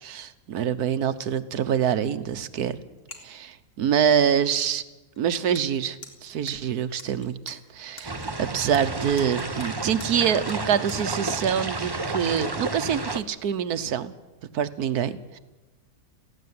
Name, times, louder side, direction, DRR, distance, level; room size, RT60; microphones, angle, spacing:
voice 1, 0.0-2.8 3.2-4.8 5.2-14.1 14.5-15.4, right 8 dB, 85° right, 13 dB, 1.5 m, -25 dB
sound 1, 3.0-3.4 3.7-3.8 5.2-5.3 5.5-5.7 5.9-8.3 8.7-11.0, left 2 dB, 40° left, 2.8 m, -45 dB
sound 2, 8.0-13.2, right 2 dB, 20° right, 0.7 m, -31 dB
18.0 x 15.5 x 9.5 m, 1.1 s
omnidirectional pair, 1.6 m